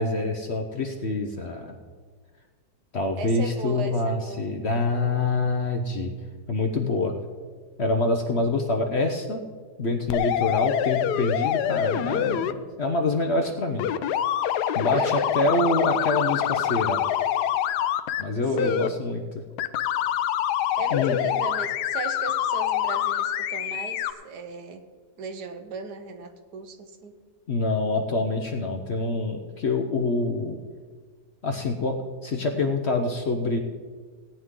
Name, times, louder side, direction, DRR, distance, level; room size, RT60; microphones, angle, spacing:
voice 1, 0.0-1.8 2.9-6.1 6.5-7.1 7.8-9.4 9.8-13.9 14.7-17.0 18.2-19.4 20.9-21.2 27.5-30.6 31.4-33.6, left 2 dB, 50° left, 4 dB, 0.9 m, -26 dB
voice 2, 3.2-4.4 14.9-15.3 18.6-18.9 20.8-24.9 25.2-27.1, right 4 dB, 70° right, 7 dB, 1.5 m, -36 dB
sound 1, 10.1-12.5 13.8-18.2 18.6-18.9 19.6-24.1, left 11 dB, 75° left, 1.1 m, -25 dB
17.5 x 9.5 x 3.7 m, 1.6 s
omnidirectional pair, 1.8 m